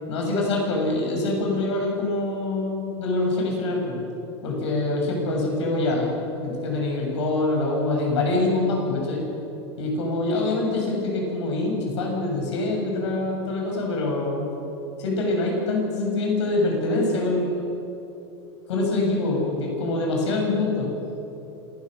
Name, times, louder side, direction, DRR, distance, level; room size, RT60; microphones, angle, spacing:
voice 1, 0.1-4.0 4.4-6.1 6.4-9.2 9.8-14.4 15.0-17.8 18.7-20.9, left 2 dB, 80° left, 0 dB, 7.2 m, -25 dB
26.5 x 18.0 x 6.3 m, 2.9 s
hypercardioid pair, 100°, 15 cm